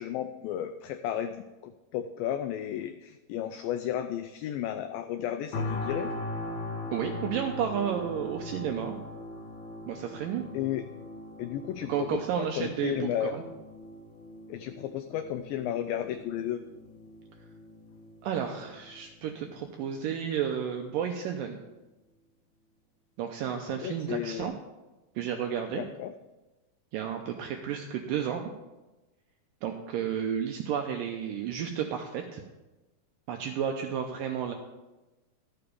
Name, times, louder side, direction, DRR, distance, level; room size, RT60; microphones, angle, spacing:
voice 1, 0.0-6.1 10.5-10.8 11.4-12.1 12.4-13.3 14.5-16.6 23.7-24.5 25.8-26.1, left 11 dB, 90° left, 8 dB, 2.0 m, -33 dB
sound 1, 5.5-20.5 21.0-21.2, left 2 dB, 60° left, 2.1 m, -41 dB
voice 2, 6.9-9.0 9.9-10.5 11.9-13.4 18.2-21.6 23.2-24.5 25.2-25.8 26.9-28.5 29.6-32.4 33.3-34.5, right 8 dB, 85° right, 4 dB, 2.0 m, -32 dB
13.0 x 6.8 x 5.1 m, 1.1 s
omnidirectional pair, 4.6 m